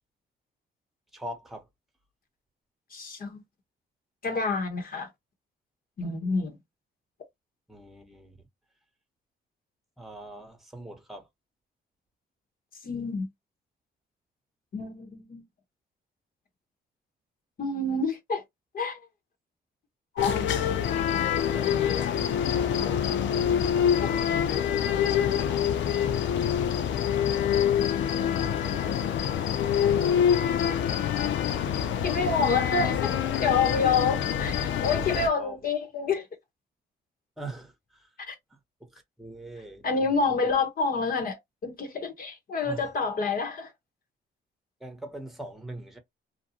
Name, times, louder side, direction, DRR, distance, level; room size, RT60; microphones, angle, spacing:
voice 1, 1.1-1.6 7.7-8.4 10.0-11.3 21.5-23.5 29.5-31.3 35.4-35.7 37.4-38.1 38.8-40.6 42.6-42.9 44.8-46.0, right 1 dB, ahead, 1.0 m, -44 dB
voice 2, 2.9-3.4 4.2-5.1 6.0-6.6 12.8-13.3 14.7-15.4 17.6-18.4 18.7-19.0 20.1-20.6 24.0-24.1 32.0-33.1 33.4-36.3 38.2-38.3 39.8-43.7, left 4 dB, 50° left, 1.1 m, -28 dB
sound 1, 20.2-35.3, left 9 dB, 80° left, 0.5 m, -26 dB
2.6 x 2.2 x 2.9 m
cardioid pair, 90°, 19 cm